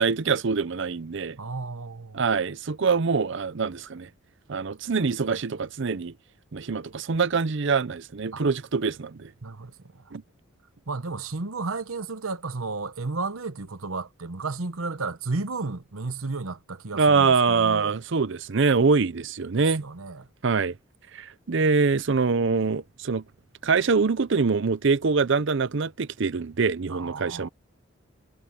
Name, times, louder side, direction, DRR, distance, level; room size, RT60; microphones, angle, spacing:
voice 1, 0.0-1.4 2.1-4.1 4.5-6.1 6.5-9.3 10.1-10.2 16.9-19.8 20.4-20.7 21.1-23.2 23.6-27.5, right 4 dB, 60° right, 0.6 m, -24 dB
voice 2, 1.4-2.2 8.3-8.4 9.4-10.1 10.9-17.9 19.5-20.3 26.9-27.5, right 3 dB, 90° right, 1.1 m, -33 dB
head